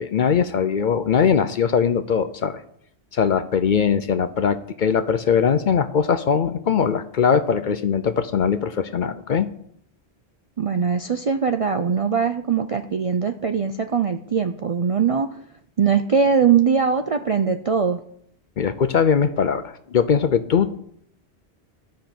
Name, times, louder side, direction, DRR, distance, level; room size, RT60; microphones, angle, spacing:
voice 1, 0.0-2.6 3.1-9.5 18.6-20.7, left 7 dB, 55° left, 10 dB, 0.6 m, -21 dB
voice 2, 10.6-15.4 15.8-18.0, right 6 dB, 50° right, 7 dB, 0.4 m, -21 dB
12.0 x 5.2 x 6.0 m, 0.68 s
omnidirectional pair, 1.1 m